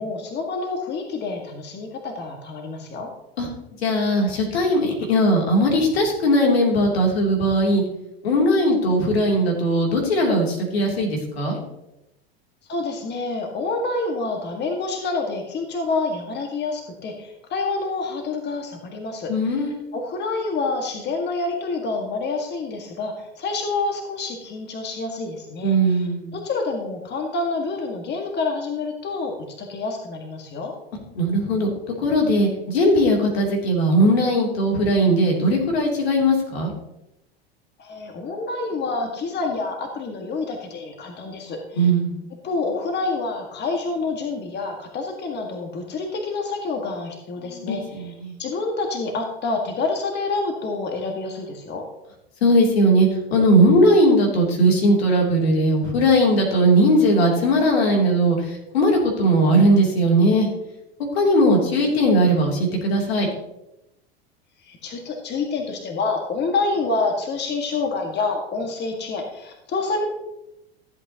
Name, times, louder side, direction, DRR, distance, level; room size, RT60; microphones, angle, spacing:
voice 1, 0.0-3.1 12.7-19.6 19.9-26.1 26.3-30.7 37.8-41.9 42.4-48.1 48.4-51.9 64.6-70.0, left 3 dB, 35° left, 3 dB, 1.8 m, -27 dB
voice 2, 3.8-7.8 8.2-11.6 19.3-19.8 25.6-26.3 31.1-36.7 41.7-42.2 47.4-48.3 52.4-58.4 58.7-60.5 61.1-63.3, equal, 80° left, 1 dB, 3.1 m, -19 dB
14.0 x 8.2 x 2.9 m, 0.88 s
hypercardioid pair, 90°, 31 cm